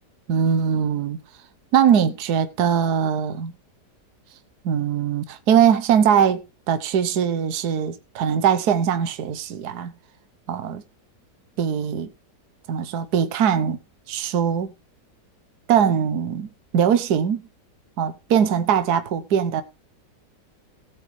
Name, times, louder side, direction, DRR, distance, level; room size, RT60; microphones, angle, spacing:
voice 1, 0.3-1.2 1.7-3.5 4.6-9.9 10.5-10.8 11.6-12.1 12.7-13.8 14.1-14.7 15.7-17.4 18.0-19.6, right 8 dB, 70° right, 1.4 m, -21 dB
18.5 x 7.7 x 3.3 m
omnidirectional pair, 1.9 m